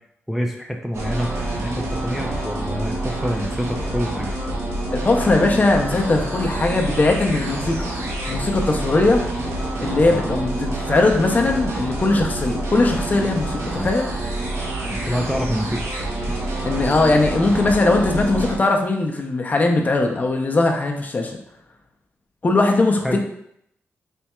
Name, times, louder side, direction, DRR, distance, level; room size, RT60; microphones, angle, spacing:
voice 1, 0.3-4.3 10.1-10.2 13.7-13.9 14.9-15.8 16.3-16.4 23.0-23.2, equal, 5° right, 1 dB, 0.4 m, -26 dB
sound 1, 0.9-18.6, right 2 dB, 70° right, 0.9 m, -27 dB
sound 2, 3.7-14.5, left 8 dB, 70° left, 0.8 m, -42 dB
voice 2, 4.9-7.9 8.3-9.2 9.8-14.1 16.6-21.4 22.4-23.2, left 2 dB, 35° left, 2 dB, 0.6 m, -19 dB
4.2 x 3.4 x 2.3 m, 0.72 s
cardioid pair, 75°, 5 cm